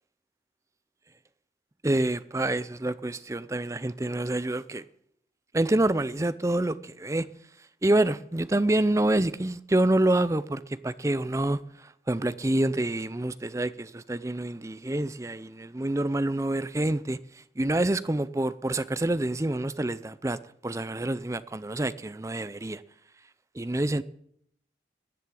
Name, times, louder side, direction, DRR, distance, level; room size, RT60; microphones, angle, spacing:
voice 1, 1.8-4.8 5.5-7.3 7.8-17.2 17.6-20.4 20.6-22.8 23.6-24.0, right 1 dB, 15° right, 0.5 m, -27 dB
14.0 x 7.8 x 9.7 m
head